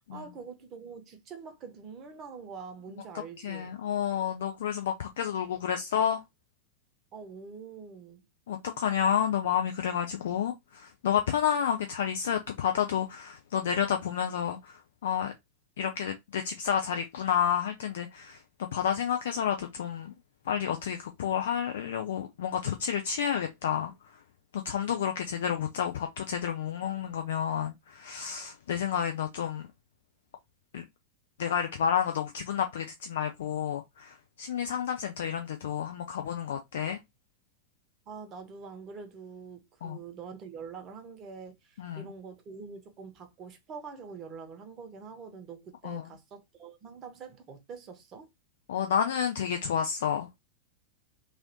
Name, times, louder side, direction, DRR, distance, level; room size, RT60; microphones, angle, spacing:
voice 1, 0.1-3.8 7.1-8.3 38.1-48.3, right 5 dB, 30° right, 0.9 m, -45 dB
voice 2, 3.4-6.2 8.5-15.3 15.8-20.1 20.5-23.9 24.5-29.7 30.7-30.8 31.4-37.0 39.8-40.0 41.8-42.1 45.8-46.1 48.7-50.4, left 8 dB, 60° left, 0.4 m, -30 dB
3.1 x 2.5 x 2.9 m
figure-of-eight pair, 90°, 0 cm